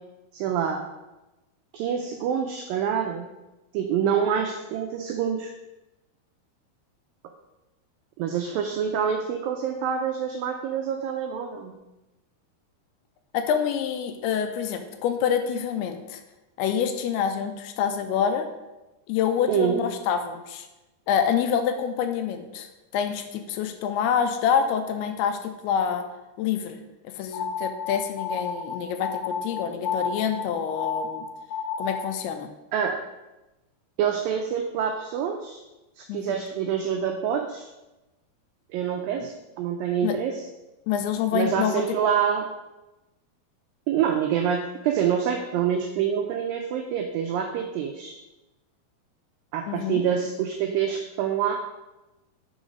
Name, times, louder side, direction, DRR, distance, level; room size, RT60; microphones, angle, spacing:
voice 1, 0.3-0.9 1.7-3.3 3.7-5.5 8.2-11.8 19.5-19.9 32.7-33.0 34.0-35.6 36.0-37.7 38.7-40.5 41.3-42.5 43.9-48.2 49.5-51.6, right 8 dB, 90° right, 4 dB, 2.0 m, -26 dB
voice 2, 13.3-16.2 16.6-18.5 19.1-20.7 21.1-22.7 22.9-25.4 25.6-26.0 26.4-26.8 27.2-31.3 31.8-32.5 36.1-36.4 40.0-40.1 40.9-41.8 49.7-50.0, left 8 dB, 85° left, 7 dB, 2.5 m, -26 dB
sound 1, 27.3-32.2, left 5 dB, 70° left, 2.6 m, -32 dB
6.2 x 3.9 x 5.1 m, 1.0 s
omnidirectional pair, 4.6 m